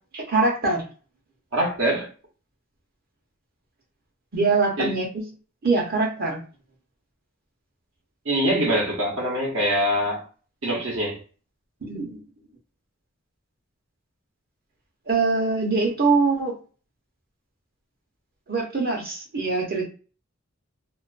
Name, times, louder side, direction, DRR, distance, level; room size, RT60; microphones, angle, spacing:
voice 1, 0.1-0.9 4.3-5.2 5.6-6.4 11.8-12.2 15.1-16.5 18.5-19.9, right 3 dB, 45° right, 0.8 m, -23 dB
voice 2, 1.5-2.1 4.8-4.9 8.2-10.2 10.6-11.2, equal, 70° right, 0.9 m, -24 dB
2.4 x 2.2 x 2.4 m
head